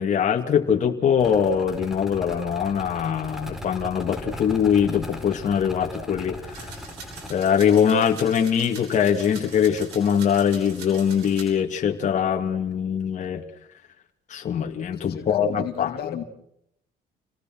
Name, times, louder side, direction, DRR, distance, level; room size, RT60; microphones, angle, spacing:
voice 1, 0.0-6.7 7.3-13.4 14.3-16.2, left 7 dB, 45° left, 2.8 m, -22 dB
sound 1, 1.2-7.3, left 1 dB, ahead, 4.6 m, -38 dB
sound 2, 6.5-11.5, right 5 dB, 90° right, 7.6 m, -43 dB
voice 2, 15.0-16.2, left 11 dB, 70° left, 2.8 m, -34 dB
29.0 x 19.0 x 6.4 m
cardioid pair, 110°, 17 cm